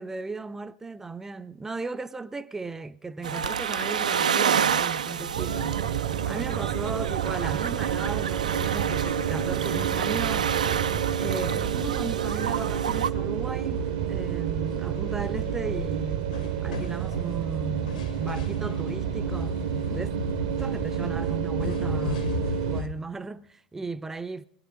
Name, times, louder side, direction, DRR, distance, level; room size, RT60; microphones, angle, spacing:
voice 1, 0.0-5.8 6.2-10.5 11.2-16.3 16.6-20.1 20.6-22.4 22.7-24.4, right 3 dB, 10° right, 0.5 m, -36 dB
sound 1, 3.2-13.1, right 7 dB, 75° right, 0.5 m, -29 dB
sound 2, 5.3-22.8, right 10 dB, 55° right, 0.9 m, -29 dB
sound 3, 8.5-22.9, left 6 dB, 75° left, 1.8 m, -38 dB
20.5 x 10.5 x 5.4 m
figure-of-eight pair, 85°, 4 cm